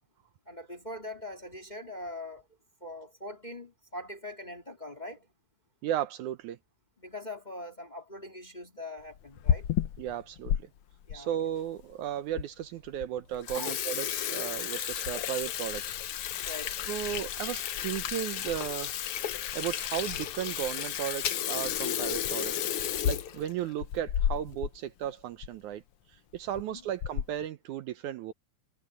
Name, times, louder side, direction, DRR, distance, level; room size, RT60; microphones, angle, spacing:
voice 1, 0.5-2.4 2.8-5.3 7.0-9.7 11.1-11.3 13.5-13.7 16.4-16.7 26.7-26.8, left 1 dB, 15° left, 1.9 m, -42 dB
voice 2, 5.8-6.6 10.0-10.5 11.1-16.3 16.7-18.9 19.6-22.6 23.0-25.8 26.1-28.3, right 11 dB, 75° right, 2.1 m, -35 dB
Water tap faucet / Sink (filling or washing), 9.2-10.6 11.1-11.2 11.9-12.0 12.4-12.5 12.8-13.0 13.3-24.7 25.0-25.1 25.4-25.5 26.3-26.6 27.0-27.4, left 10 dB, 80° left, 1.2 m, -32 dB
omnidirectional pair, 3.8 m